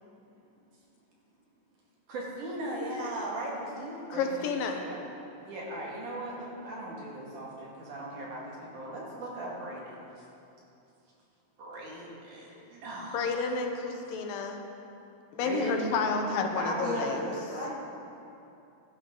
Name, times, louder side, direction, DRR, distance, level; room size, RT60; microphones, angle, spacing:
voice 1, 2.1-4.5 4.7-5.0 5.4-10.0 11.6-13.4 15.4-17.2, right 1 dB, 65° right, -4 dB, 3.5 m, -38 dB
voice 2, 4.1-4.8 13.1-14.6 15.3-17.3, left 4 dB, 85° left, 4 dB, 2.7 m, -30 dB
voice 3, 16.8-17.7, left 1 dB, 30° right, -8 dB, 0.6 m, -34 dB
16.0 x 11.5 x 3.9 m, 2.7 s
omnidirectional pair, 3.9 m